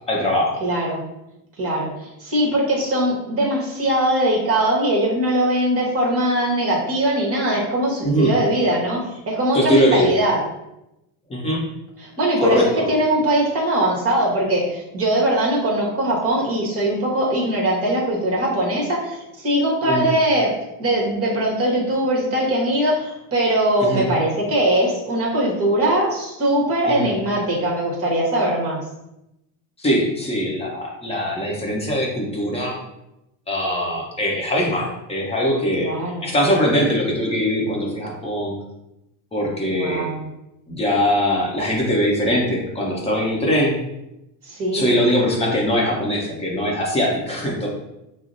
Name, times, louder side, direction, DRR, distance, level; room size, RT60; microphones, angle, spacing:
voice 1, 0.1-0.6 8.0-8.3 9.5-10.1 11.3-11.6 12.4-12.8 19.9-20.1 23.8-24.0 26.9-27.1 29.8-32.8 33.5-35.9 36.2-38.5 39.3-40.1 40.7-43.7 44.7-47.7, equal, 15° left, -2 dB, 0.7 m, -21 dB
voice 2, 0.6-1.0 1.6-10.4 12.0-20.5 20.8-28.8 35.8-36.3 39.7-40.3 44.4-44.9, right 1 dB, 30° right, -3 dB, 1.1 m, -21 dB
5.6 x 2.0 x 2.5 m, 0.90 s
supercardioid pair, 135°, 48 cm